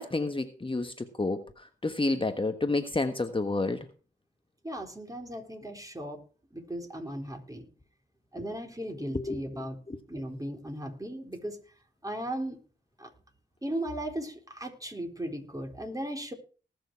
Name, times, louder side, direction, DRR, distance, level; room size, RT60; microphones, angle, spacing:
voice 1, 0.0-1.4 1.8-3.9 9.0-9.4, left 2 dB, 25° left, 7 dB, 1.3 m, -29 dB
voice 2, 4.6-6.2 6.5-7.7 8.3-9.8 10.1-11.6 12.0-12.6 13.0-13.1 13.6-16.3, right 1 dB, 15° right, 3 dB, 4.1 m, -37 dB
19.5 x 6.7 x 4.7 m, 0.39 s
supercardioid pair, 40°, 21 cm